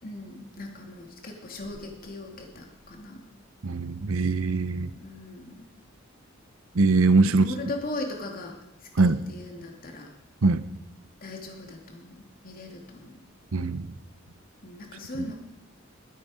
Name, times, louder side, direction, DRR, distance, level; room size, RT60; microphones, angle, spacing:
voice 1, 0.0-3.2 4.9-5.7 7.2-10.1 11.2-13.2 14.6-15.4, left 2 dB, 45° left, 2 dB, 2.6 m, -39 dB
voice 2, 3.6-4.9 6.7-7.5 9.0-9.2 10.4-10.6 13.5-13.9 15.2-15.3, right 3 dB, 85° right, 14 dB, 0.8 m, -22 dB
21.0 x 9.3 x 5.1 m, 0.90 s
head